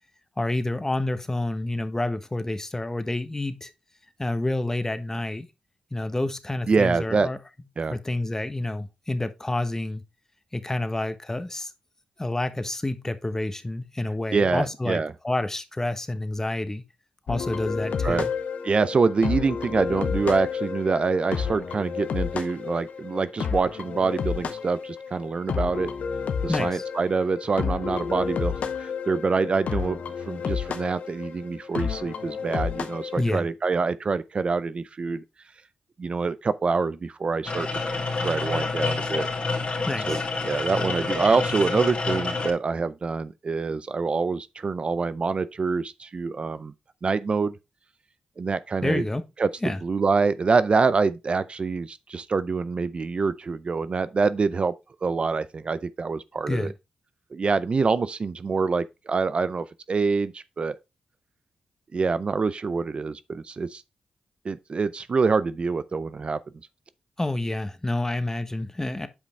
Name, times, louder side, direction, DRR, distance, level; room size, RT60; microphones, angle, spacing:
voice 1, 0.4-3.7 4.2-5.5 5.9-7.4 7.9-10.0 10.5-11.7 12.2-16.8 17.3-18.3 26.5-26.8 33.2-33.5 39.9-40.2 48.8-49.2 49.6-49.8 56.5-56.7 67.2-69.1, left 2 dB, 20° left, 1.1 m, -28 dB
voice 2, 6.7-7.3 7.8-8.0 14.3-15.1 18.0-18.3 18.6-25.9 26.4-30.0 30.3-35.2 36.0-39.3 40.1-40.2 40.5-46.7 47.0-47.5 48.4-49.0 49.4-54.7 55.0-56.7 57.3-60.8 61.9-63.8 64.4-66.4, right 4 dB, 50° right, 0.5 m, -25 dB
sound 1, 17.3-33.3, left 6 dB, 75° left, 0.9 m, -31 dB
sound 2, 37.5-42.5, left 3 dB, 50° left, 2.5 m, -28 dB
8.5 x 5.1 x 3.3 m
cardioid pair, 55°, 2 cm